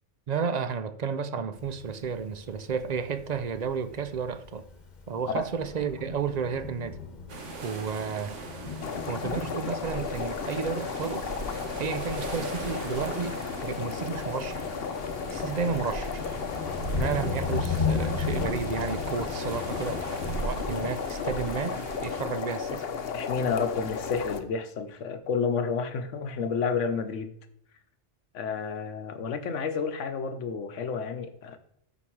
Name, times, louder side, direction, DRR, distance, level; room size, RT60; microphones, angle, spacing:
voice 1, 0.3-4.7 5.1-7.0 7.6-8.4 9.1-11.3 11.8-13.3 13.6-14.7 15.3-16.4 17.0-22.9, right 6 dB, 50° right, 0.5 m, -32 dB
Thunder, 1.6-20.9, left 5 dB, 40° left, 1.2 m, -37 dB
sound 1, 7.3-22.2, right 2 dB, 75° right, 1.7 m, -40 dB
sound 2, 8.8-24.4, left 6 dB, 55° left, 1.0 m, -34 dB
voice 2, 23.1-27.3 28.3-31.6, left 5 dB, 80° left, 1.2 m, -30 dB
13.5 x 4.8 x 4.6 m
omnidirectional pair, 1.3 m